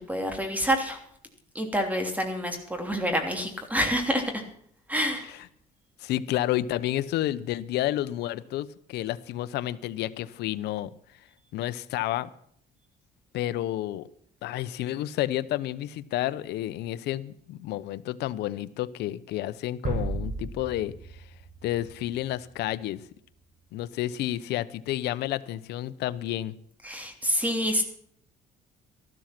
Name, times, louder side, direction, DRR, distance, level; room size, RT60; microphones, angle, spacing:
voice 1, 0.1-1.0 1.5-4.4 4.9-5.3 26.8-27.8, equal, 10° right, 6 dB, 2.9 m, -27 dB
voice 2, 6.0-10.9 11.5-12.3 13.3-14.1 14.4-21.3 21.6-23.0 23.7-26.5, left 14 dB, 80° left, 15 dB, 0.8 m, -30 dB
sound 1, 19.8-22.7, right 3 dB, 45° right, 5.3 m, -34 dB
13.5 x 12.5 x 6.0 m, 0.64 s
cardioid pair, 110°, 17 cm